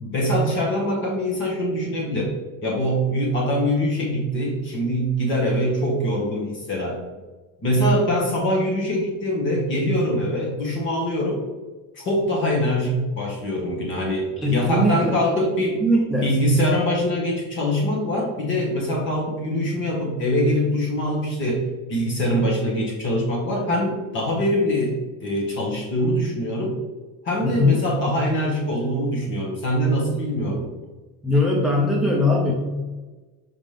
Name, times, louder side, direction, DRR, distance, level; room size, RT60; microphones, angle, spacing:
voice 1, 0.0-2.3 2.6-7.0 7.6-11.4 12.0-15.8 16.2-26.8 27.2-30.7, equal, 35° left, -1 dB, 1.7 m, -23 dB
voice 2, 14.4-15.1 15.8-16.4 27.4-27.8 31.2-32.5, left 1 dB, ahead, -2 dB, 0.4 m, -20 dB
5.8 x 5.0 x 3.4 m, 1.3 s
cardioid pair, 170°, 33 cm